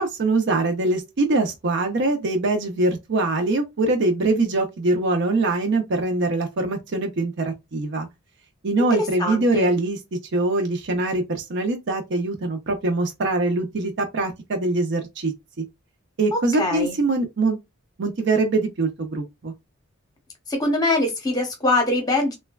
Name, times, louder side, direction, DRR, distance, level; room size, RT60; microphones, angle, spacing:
voice 1, 0.0-8.1 8.6-10.0 10.3-15.6 16.2-17.6 18.0-19.5, right 2 dB, 55° right, 0.5 m, -23 dB
voice 2, 8.9-9.7 16.3-17.0 20.5-22.3, left 2 dB, 20° left, 0.7 m, -23 dB
3.1 x 2.2 x 2.2 m
head